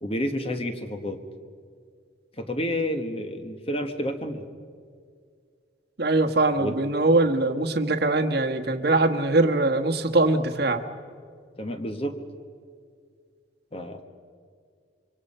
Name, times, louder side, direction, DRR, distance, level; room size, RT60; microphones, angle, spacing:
voice 1, 0.0-1.2 2.4-4.4 6.6-6.8 11.6-12.2 13.7-14.0, equal, 30° left, 7 dB, 1.3 m, -30 dB
voice 2, 6.0-10.8, right 2 dB, 55° right, 5 dB, 1.3 m, -22 dB
26.5 x 24.0 x 5.5 m, 2.2 s
head